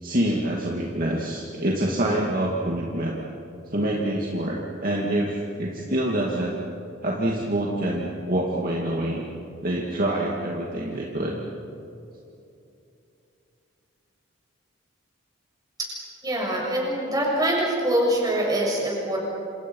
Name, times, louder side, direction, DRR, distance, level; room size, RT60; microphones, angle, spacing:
voice 1, 0.0-3.2 3.7-6.6 7.0-9.2 9.6-11.4, right 1 dB, 40° right, -3 dB, 2.3 m, -26 dB
voice 2, 16.2-19.2, right 1 dB, 20° right, -2 dB, 6.8 m, -24 dB
28.0 x 28.0 x 5.6 m, 2.7 s
head